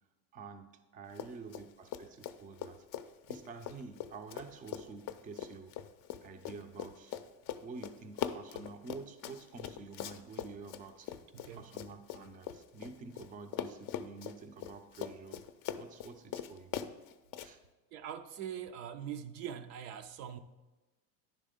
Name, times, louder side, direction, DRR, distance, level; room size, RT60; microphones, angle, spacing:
voice 1, 0.3-5.8 6.2-7.2 7.6-11.2 11.6-15.4 15.8-16.7 17.4-17.6, right 4 dB, 20° right, 0.4 m, -49 dB
Run, 1.1-1.7 1.9-13.3 13.5-17.5, left 10 dB, 45° left, 0.5 m, -41 dB
voice 2, 11.3-11.7 17.9-20.4, right 9 dB, 75° right, 0.7 m, -43 dB
10.0 x 3.4 x 5.0 m
hypercardioid pair, 90°, 48 cm